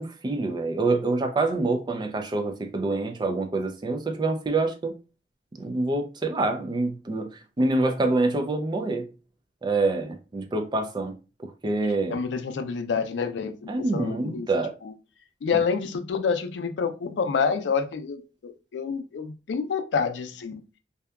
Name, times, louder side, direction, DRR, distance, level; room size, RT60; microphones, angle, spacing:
voice 1, 0.0-4.9 5.6-9.1 9.6-11.1 11.4-12.2 13.7-14.7, right 2 dB, 25° right, 0.3 m, -26 dB
voice 2, 12.1-14.5 14.8-14.9 15.4-20.6, left 5 dB, 85° left, 0.4 m, -28 dB
2.7 x 2.2 x 2.2 m
head